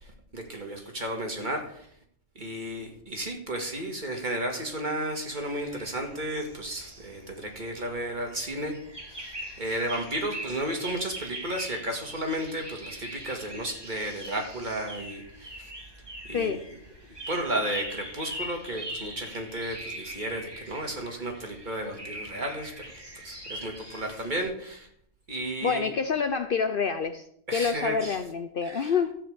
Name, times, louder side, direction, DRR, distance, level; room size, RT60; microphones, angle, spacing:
voice 1, 0.0-1.9 2.4-8.7 9.2-9.3 9.6-15.7 16.3-16.5 17.3-22.8 23.2-24.9 25.3-25.9 27.5-28.2 28.6-28.9, right 1 dB, 40° right, 2 dB, 2.2 m, -33 dB
sound 1, 5.2-24.4, right 1 dB, 20° right, 2.6 m, -42 dB
voice 2, 25.6-27.3 27.5-29.1, left 6 dB, 55° left, 9 dB, 0.7 m, -27 dB
13.5 x 5.1 x 8.0 m, 0.68 s
omnidirectional pair, 1.3 m